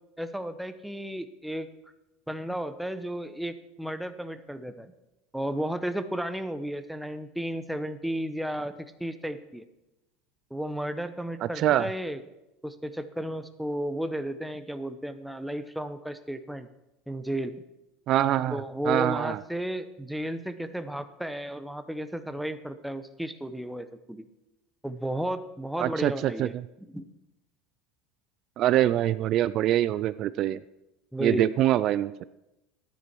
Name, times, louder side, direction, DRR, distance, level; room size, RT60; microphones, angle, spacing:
voice 1, 0.2-1.7 2.3-4.9 5.3-9.6 10.5-12.2 12.6-16.7 17.1-17.6 18.5-24.2 24.8-26.6 26.9-27.0 31.1-31.6, right 1 dB, ahead, 10 dB, 0.9 m, -33 dB
voice 2, 11.6-11.9 18.1-19.4 25.8-26.5 28.6-30.6 31.2-32.1, right 13 dB, 50° right, 16 dB, 0.4 m, -24 dB
12.0 x 9.6 x 4.6 m, 0.94 s
supercardioid pair, 105°, 0 cm